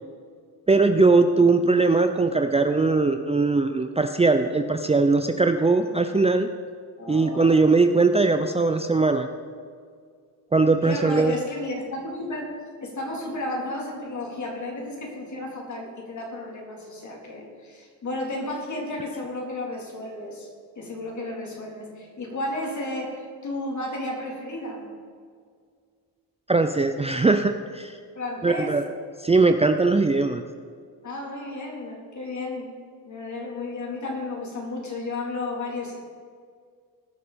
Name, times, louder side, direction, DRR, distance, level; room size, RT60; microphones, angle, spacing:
voice 1, 0.7-6.5 7.1-9.3 10.5-11.4 26.5-28.0 28.4-28.8 29.2-30.4, right 3 dB, 15° right, 7 dB, 0.6 m, -20 dB
voice 2, 7.0-7.8 10.8-12.6 12.8-20.5 20.8-24.9 28.2-28.8 31.0-32.7 33.0-36.0, left 2 dB, 45° left, -1 dB, 3.8 m, -33 dB
20.0 x 6.6 x 5.2 m, 2.1 s
cardioid pair, 90°, 40 cm